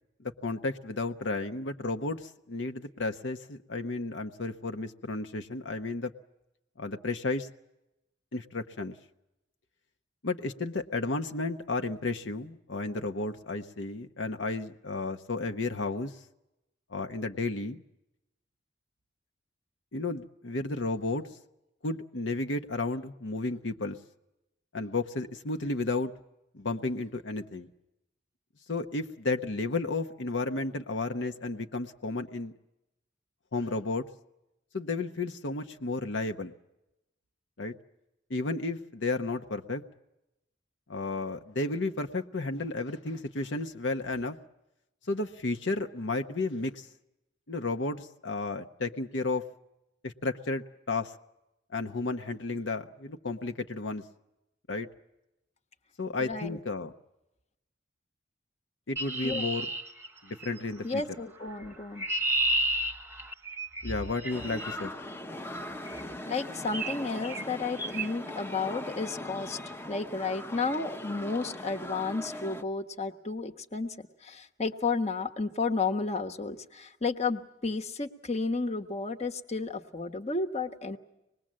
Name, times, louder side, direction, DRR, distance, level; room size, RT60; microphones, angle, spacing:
voice 1, 0.2-6.1 6.8-7.5 8.3-8.9 10.2-16.1 16.9-17.8 19.9-21.3 21.8-24.0 24.7-26.1 26.5-27.7 28.7-32.5 33.5-34.0 34.7-36.5 37.6-37.7 38.3-39.8 40.9-44.4 45.1-46.9 47.5-49.4 50.0-51.1 51.7-54.0 54.7-54.9 56.0-56.9 58.9-59.7 60.2-61.0 63.8-64.9, left 3 dB, 75° left, 6 dB, 1.0 m, -32 dB
voice 2, 56.2-56.6 59.2-59.5 60.8-62.0 66.3-69.6 69.8-81.0, left 4 dB, 35° left, 5 dB, 1.3 m, -32 dB
Chirp tweet, 59.0-60.6 61.6-64.8 65.9-66.1 66.7-67.0 67.2-67.5 67.8-68.1, right 1 dB, 15° right, 1.0 m, -32 dB
sound 1, 64.3-72.6, left 1 dB, 10° left, 0.8 m, -40 dB
25.5 x 20.5 x 7.5 m, 0.92 s
head